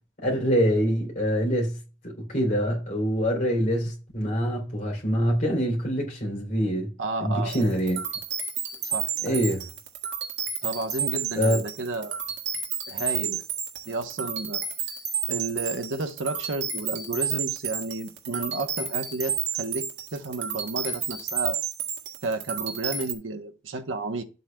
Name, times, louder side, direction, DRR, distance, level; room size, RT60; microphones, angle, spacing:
voice 1, 0.2-1.8 2.0-6.9 7.2-8.0 9.2-9.6 11.4-11.6, equal, 45° left, 3.3 m, -25 dB
voice 2, 7.0-7.7 8.8-9.4 10.6-12.2 12.9-13.4 13.9-14.6 15.3-21.6 22.2-24.2, right 2 dB, 90° right, 1.0 m, -32 dB
sound 1, 7.5-23.1, right 8 dB, 65° right, 1.7 m, -31 dB
12.0 x 8.1 x 2.3 m
head